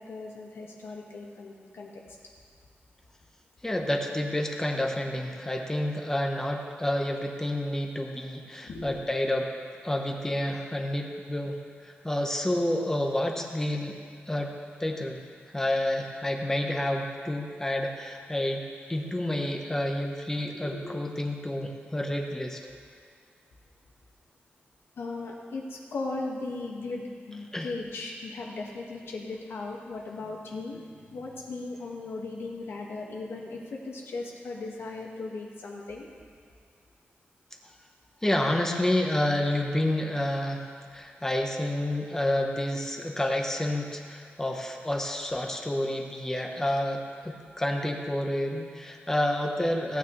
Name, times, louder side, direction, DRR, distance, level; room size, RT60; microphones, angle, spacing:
voice 1, 0.0-2.2 8.6-9.0 20.5-21.0 25.0-36.1, left 3 dB, 75° left, -1 dB, 1.8 m, -37 dB
voice 2, 3.6-9.5 9.8-14.0 14.3-14.5 14.8-15.2 15.5-18.6 18.9-22.6 27.5-27.7 38.2-50.0, left 1 dB, 15° left, 2 dB, 1.1 m, -29 dB
17.5 x 9.3 x 3.3 m, 2.1 s
wide cardioid pair, 130°, 4 cm